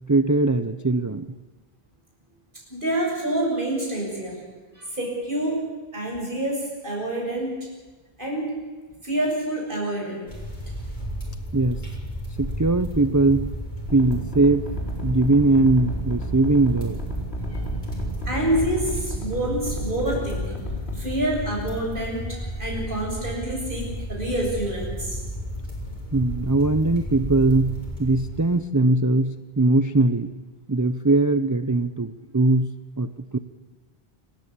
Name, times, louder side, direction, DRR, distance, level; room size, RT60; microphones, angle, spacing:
voice 1, 0.1-1.3 11.5-11.8 12.4-13.5 13.9-14.7 15.0-17.0 26.1-30.4 30.7-32.7 33.0-33.4, right 2 dB, 20° right, 10 dB, 0.7 m, -21 dB
voice 2, 2.7-4.4 4.7-5.6 5.9-7.6 8.2-8.6 9.0-10.3 17.5-17.6 18.3-20.5 20.9-25.2, right 1 dB, 55° right, -2 dB, 7.7 m, -27 dB
sound 1, 10.3-28.6, equal, 50° left, 6.3 m, -33 dB
sound 2, 13.9-21.0, equal, 85° left, 4.4 m, -32 dB
28.5 x 14.0 x 8.6 m, 1.3 s
omnidirectional pair, 1.0 m